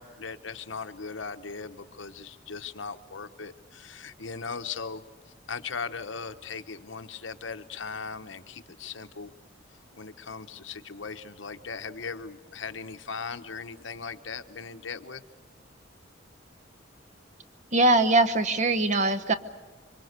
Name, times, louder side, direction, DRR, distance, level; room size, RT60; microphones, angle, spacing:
voice 1, 0.0-5.0 5.5-9.3 10.0-15.2, left 5 dB, 80° left, 9 dB, 1.0 m, -38 dB
voice 2, 17.7-19.3, right 2 dB, 40° right, 9 dB, 1.0 m, -22 dB
26.0 x 24.5 x 6.7 m, 1.3 s
head